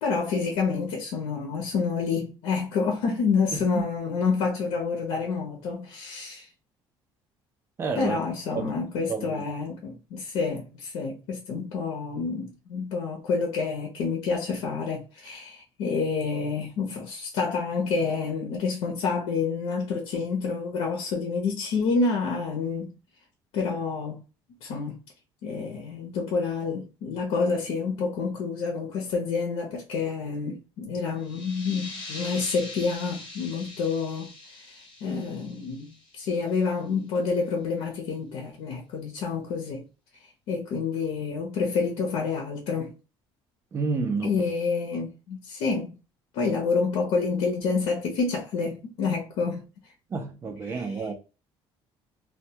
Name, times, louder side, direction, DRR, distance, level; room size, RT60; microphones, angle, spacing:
voice 1, 0.0-6.5 8.0-22.9 23.5-24.2 24.6-25.0 25.4-39.9 40.5-43.0 44.2-46.0 46.3-49.6 50.7-50.9, left 4 dB, 85° left, 0.6 m, -28 dB
voice 2, 3.5-3.8 7.8-8.2 8.5-8.7 9.1-9.4 43.7-44.5 50.1-51.1, right 4 dB, 25° right, 0.4 m, -30 dB
sound 1, 31.2-36.6, left 2 dB, 45° left, 1.0 m, -42 dB
2.1 x 2.1 x 2.7 m
cardioid pair, 180°, 10 cm